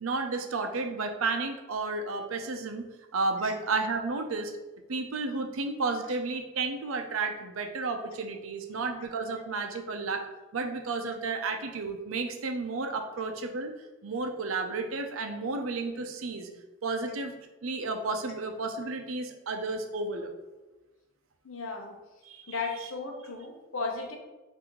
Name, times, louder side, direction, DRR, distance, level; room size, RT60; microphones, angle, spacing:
voice 1, 0.0-4.5 4.9-10.2 10.5-13.7 14.0-16.5 16.8-17.4 17.6-20.3 22.3-22.4, right 3 dB, 85° right, 5 dB, 0.6 m, -32 dB
voice 2, 21.4-21.9 22.5-24.2, left 4 dB, 75° left, 2 dB, 0.8 m, -35 dB
6.0 x 2.7 x 3.0 m, 1.1 s
head